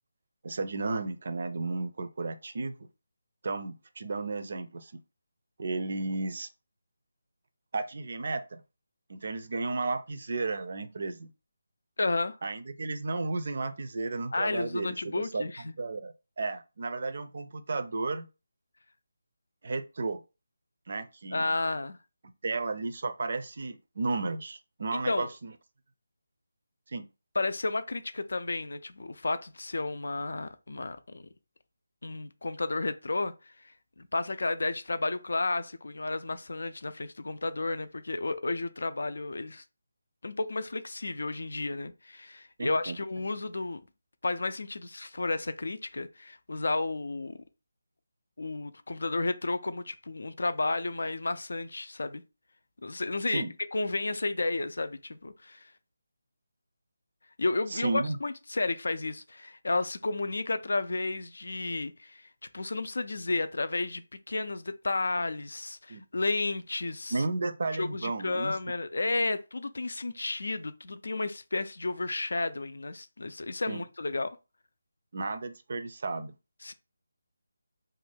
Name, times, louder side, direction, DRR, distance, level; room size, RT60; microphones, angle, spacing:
voice 1, 0.4-2.8 3.4-5.0 5.6-6.5 7.7-8.6 9.1-11.3 12.4-15.5 15.8-18.3 19.6-20.2 20.9-21.4 22.4-25.5 26.9-27.1 42.6-43.0 53.3-53.5 57.7-58.2 65.9-66.0 67.1-68.6 73.7-73.8 75.1-76.3, right 3 dB, 55° right, 0.4 m, -33 dB
voice 2, 12.0-12.4 14.3-15.7 21.3-22.0 24.9-25.3 27.3-31.3 32.0-33.3 34.0-39.6 40.2-43.8 44.2-47.4 48.4-52.2 52.8-53.5 53.7-55.7 57.4-62.3 62.5-67.2 67.7-74.4 76.6-76.7, left 2 dB, 75° left, 0.4 m, -32 dB
2.6 x 2.3 x 3.3 m
figure-of-eight pair, 165°, 0 cm